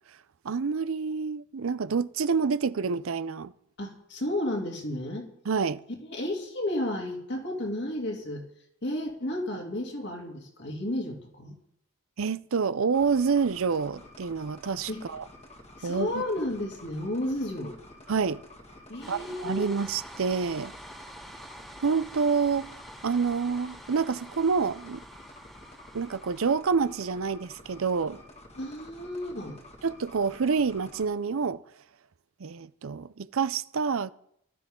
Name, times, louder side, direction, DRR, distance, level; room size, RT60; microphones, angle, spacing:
voice 1, 0.4-3.5 5.5-5.8 12.2-15.2 15.8-16.2 18.1-18.4 19.1-20.7 21.8-22.7 23.0-25.0 25.9-28.2 29.8-31.6 32.4-34.1, right 5 dB, 65° right, 0.5 m, -27 dB
voice 2, 3.8-5.3 6.1-8.4 8.8-11.6 14.9-15.0 15.8-17.8 18.9-19.7 28.6-29.6, left 1 dB, 55° left, 3.0 m, -32 dB
sound 1, 12.9-31.1, left 1 dB, 30° left, 2.0 m, -50 dB
sound 2, 19.0-26.6, equal, ahead, 2.1 m, -47 dB
18.5 x 13.0 x 3.8 m
head